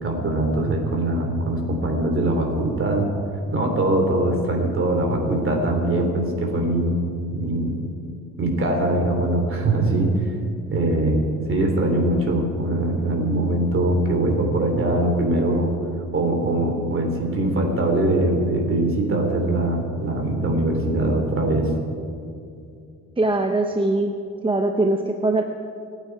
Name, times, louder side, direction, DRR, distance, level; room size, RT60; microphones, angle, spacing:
voice 1, 0.0-3.1 3.5-7.0 7.3-7.8 8.4-10.4 10.7-11.2 11.5-15.7 16.1-21.7, right 1 dB, 45° right, 3 dB, 3.4 m, -22 dB
voice 2, 23.2-24.1 24.4-25.5, right 2 dB, 15° right, 5 dB, 0.8 m, -21 dB
26.0 x 9.1 x 4.8 m, 2.4 s
cardioid pair, 90°, 30 cm